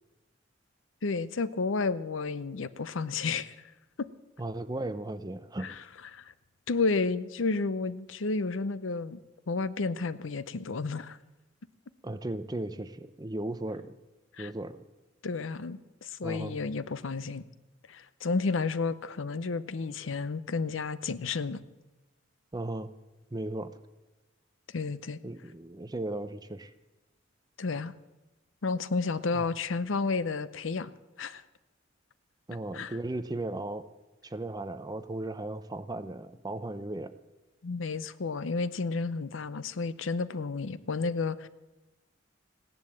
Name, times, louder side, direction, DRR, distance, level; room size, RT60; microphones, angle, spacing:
voice 1, 1.0-3.5 4.0-4.1 5.6-5.8 6.1-6.3 6.7-9.2 9.5-11.2 14.4-14.5 15.2-17.4 17.9-21.6 24.7-25.2 27.6-27.9 28.6-30.9 31.2-31.4 32.7-33.0 37.6-41.5, left 4 dB, 75° left, 16 dB, 0.7 m, -31 dB
voice 2, 4.4-5.8 12.0-13.9 14.4-14.8 16.2-16.6 22.5-22.9 23.3-23.7 25.2-26.7 29.3-29.5 32.5-33.9 34.2-37.1, right 1 dB, 20° right, 11 dB, 0.6 m, -36 dB
16.5 x 10.5 x 7.7 m, 1.1 s
head